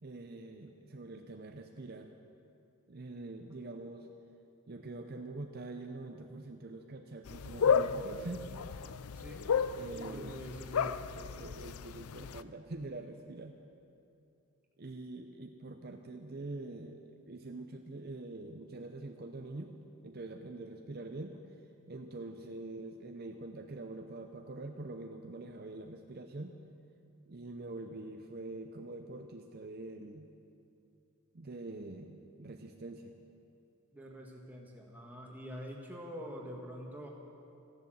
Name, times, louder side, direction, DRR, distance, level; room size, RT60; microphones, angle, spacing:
voice 1, 0.0-2.1 2.9-4.1 4.7-8.5 9.7-10.4 11.1-13.6 14.8-19.7 20.0-21.4 21.9-26.6 27.3-30.3 31.3-33.1, right 2 dB, 45° right, 5 dB, 0.6 m, -45 dB
sound 1, 7.3-12.4, left 6 dB, 80° left, 0.5 m, -33 dB
voice 2, 9.2-9.5 10.0-11.1 33.9-37.1, equal, 10° right, -1 dB, 1.7 m, -45 dB
14.5 x 11.0 x 7.8 m, 2.6 s
head